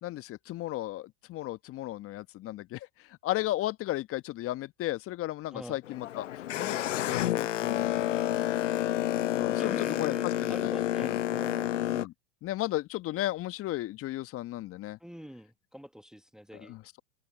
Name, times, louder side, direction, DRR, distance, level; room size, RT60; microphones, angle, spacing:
voice 1, 0.0-8.5 9.4-11.2 11.9-12.1 12.4-15.0 16.5-17.0, left 15 dB, 40° left, 1.5 m, -35 dB
Boat Water vehicle, 5.8-12.1, left 12 dB, 85° left, 0.5 m, -29 dB
voice 2, 9.6-11.7 15.0-16.8, equal, ahead, 1.3 m, -44 dB
open air
hypercardioid pair, 90°, 36 cm